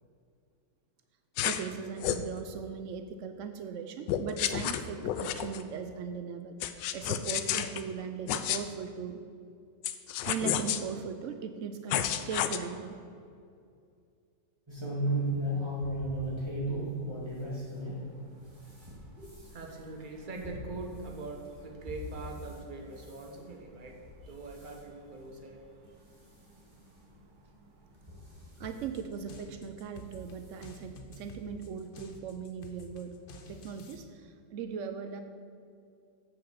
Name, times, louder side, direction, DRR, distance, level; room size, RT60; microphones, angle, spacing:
sound 1, 1.4-1.7 2.0-2.3 4.1-5.6 6.6-7.8 8.3-8.6 9.8-10.8 11.9-12.6, left 10 dB, 90° left, 1.3 m, -30 dB
voice 1, 1.4-9.2 10.3-13.0 28.6-33.2 33.5-35.2, right 6 dB, 85° right, 7 dB, 0.6 m, -39 dB
sound 2, 14.7-18.0 18.4-22.6 23.0-23.3 23.9-24.2 24.5-24.8 25.4-25.5 25.9-26.0 27.1-27.2 28.0-28.8 29.9-30.1 30.5-30.6 30.9-31.0, right 1 dB, 15° right, 2.1 m, -35 dB
voice 2, 17.7-28.5, right 3 dB, 35° right, 2 dB, 1.0 m, -45 dB
sound 3, 28.6-34.0, left 1 dB, 50° left, 0.7 m, -49 dB
7.9 x 6.5 x 7.2 m, 2.4 s
omnidirectional pair, 1.9 m